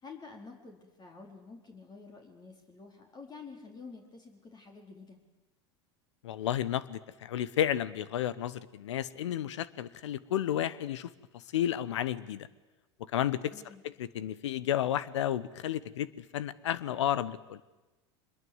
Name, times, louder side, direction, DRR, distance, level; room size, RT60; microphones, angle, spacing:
voice 1, 0.0-5.2 13.5-13.8, left 4 dB, 30° left, 2 dB, 4.6 m, -49 dB
voice 2, 6.2-12.5 13.1-13.5 14.0-17.6, left 11 dB, 75° left, 18 dB, 1.1 m, -32 dB
25.5 x 21.5 x 8.2 m, 1.1 s
hypercardioid pair, 85°, 15 cm